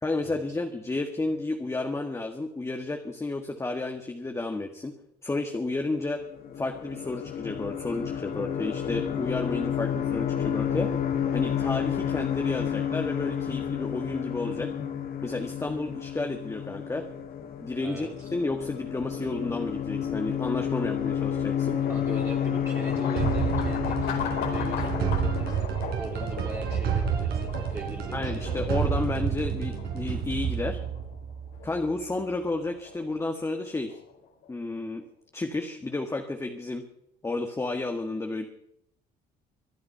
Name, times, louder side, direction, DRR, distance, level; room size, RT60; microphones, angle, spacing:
voice 1, 0.0-4.9 5.2-6.2 6.6-10.9 11.3-14.7 15.2-17.0 17.6-21.8 28.1-30.8 31.6-34.0 34.5-35.0 35.3-36.9 37.2-38.4, left 2 dB, 15° left, 3 dB, 1.6 m, -31 dB
sound 1, 6.1-25.5, left 8 dB, 60° left, 1.8 m, -30 dB
voice 2, 17.8-18.3 21.9-25.7 26.0-28.7, right 2 dB, 15° right, -2 dB, 2.6 m, -41 dB
sound 2, 20.6-34.6, left 6 dB, 85° left, 4.5 m, -39 dB
sound 3, 23.2-32.0, right 7 dB, 70° right, 4.1 m, -30 dB
24.5 x 9.4 x 5.6 m, 0.74 s
cardioid pair, 110°, 17 cm